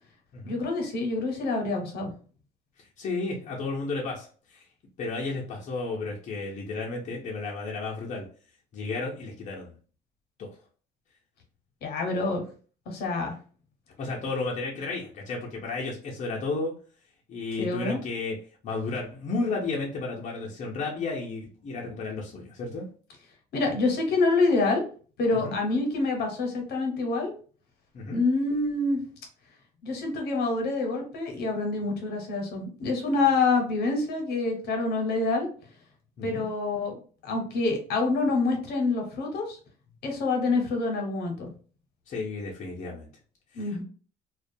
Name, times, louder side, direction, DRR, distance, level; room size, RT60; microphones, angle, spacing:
voice 1, 0.5-2.1 11.8-12.4 12.9-13.3 17.6-18.0 23.5-24.8 25.2-27.3 28.1-29.0 29.8-35.5 36.2-39.6 40.0-41.5 43.5-43.8, left 3 dB, 70° left, 2 dB, 0.9 m, -26 dB
voice 2, 3.0-4.6 5.0-8.3 8.7-9.8 10.4-10.5 14.0-16.7 17.3-18.4 18.6-22.9 25.3-25.6 27.9-28.2 36.2-36.4 42.1-43.1 43.5-43.8, left 3 dB, 45° left, -3 dB, 0.6 m, -33 dB
2.3 x 2.2 x 2.6 m, 0.41 s
cardioid pair, 110°, 17 cm